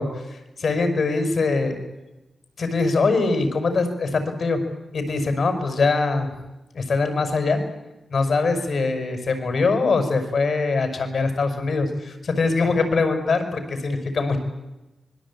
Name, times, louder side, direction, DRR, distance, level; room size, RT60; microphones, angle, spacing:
voice 1, 0.0-1.8 2.6-4.6 4.9-6.3 6.7-7.6 8.1-14.4, left 3 dB, 60° left, 8 dB, 5.9 m, -22 dB
26.0 x 22.0 x 8.8 m, 1.0 s
wide cardioid pair, 105°, 0 cm